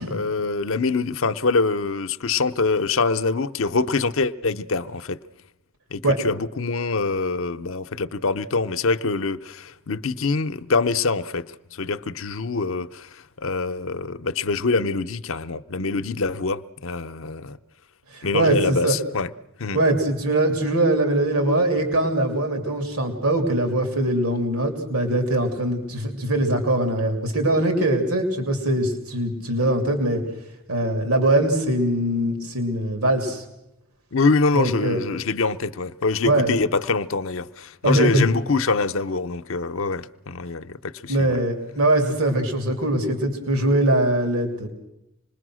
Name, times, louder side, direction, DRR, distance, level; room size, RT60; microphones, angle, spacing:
voice 1, 0.0-5.2 5.9-17.6 18.2-19.3 19.6-19.8 34.1-41.4, left 4 dB, 65° left, 0.7 m, -24 dB
voice 2, 18.1-19.0 19.7-30.2 30.7-33.4 34.5-35.0 36.2-36.5 37.8-38.3 41.1-44.7, right 1 dB, 85° right, 2.9 m, -22 dB
26.5 x 20.5 x 6.3 m
head